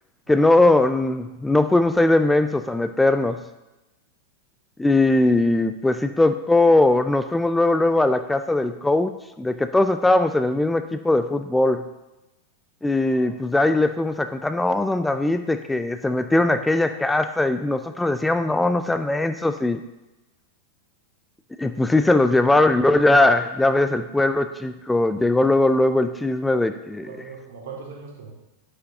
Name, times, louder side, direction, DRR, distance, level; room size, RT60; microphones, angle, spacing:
voice 1, 0.3-3.4 4.8-11.8 12.8-19.8 21.6-27.1, left 2 dB, 5° left, 9 dB, 0.3 m, -20 dB
voice 2, 27.0-28.3, right 5 dB, 60° right, -1 dB, 2.0 m, -40 dB
8.5 x 8.5 x 2.7 m, 1.0 s
figure-of-eight pair, 90°, 0 cm